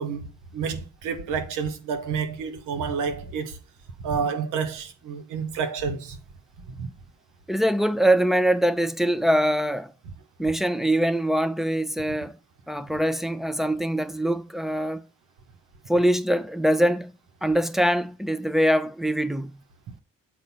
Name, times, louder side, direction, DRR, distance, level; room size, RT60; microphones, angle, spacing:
voice 1, 0.0-3.6 4.0-6.2 6.8-6.9, right 6 dB, 80° right, 1.2 m, -29 dB
voice 2, 7.5-9.9 10.4-12.4 12.7-15.0 15.9-17.1 17.4-19.6, right 1 dB, ahead, 0.8 m, -23 dB
7.7 x 4.2 x 5.4 m
hypercardioid pair, 50°, 31 cm